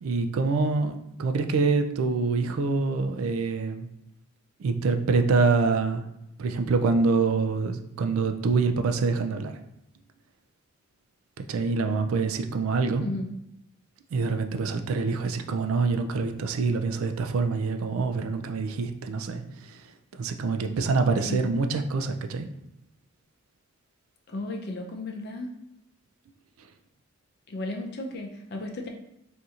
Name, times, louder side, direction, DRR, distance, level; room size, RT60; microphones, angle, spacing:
voice 1, 0.0-3.9 4.6-6.1 6.4-9.5 11.4-13.0 14.1-19.4 20.1-22.5, right 4 dB, 75° right, 7 dB, 0.3 m, -25 dB
voice 2, 24.3-25.5 27.5-28.9, left 2 dB, 50° left, 2 dB, 0.5 m, -34 dB
4.1 x 2.6 x 2.4 m, 0.80 s
head